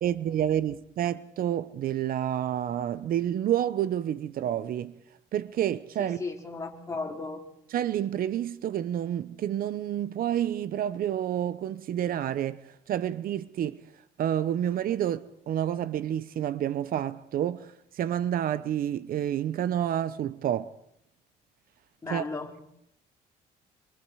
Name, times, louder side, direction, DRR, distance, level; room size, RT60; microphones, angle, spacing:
voice 1, 0.0-4.9 5.3-6.2 7.7-13.8 14.2-20.7 22.1-22.2, right 10 dB, 60° right, 0.9 m, -29 dB
voice 2, 6.0-7.4 22.0-22.5, left 3 dB, 20° left, 4.9 m, -35 dB
27.5 x 24.0 x 4.9 m
cardioid pair, 110°, 17 cm